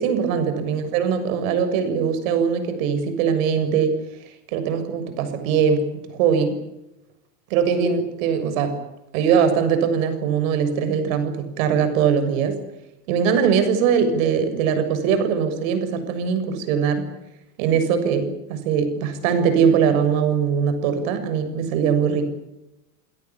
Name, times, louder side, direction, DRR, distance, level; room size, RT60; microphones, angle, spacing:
voice 1, 0.0-4.0 4.5-5.9 6.1-6.6 7.5-8.7 9.1-12.6 13.1-17.1 17.6-22.3, right 7 dB, 60° right, 9 dB, 7.1 m, -21 dB
27.5 x 18.0 x 8.7 m, 0.90 s
supercardioid pair, 155°, 46 cm